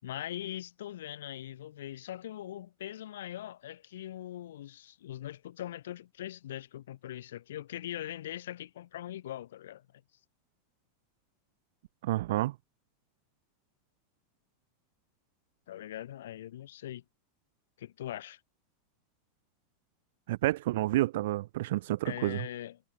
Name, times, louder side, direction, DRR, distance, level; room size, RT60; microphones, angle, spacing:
voice 1, 0.0-9.9 15.7-17.0 17.8-18.4 22.0-22.8, left 12 dB, 90° left, 6.2 m, -41 dB
voice 2, 12.0-12.5 20.3-22.5, right 16 dB, 65° right, 0.6 m, -29 dB
supercardioid pair, 165°, 0 cm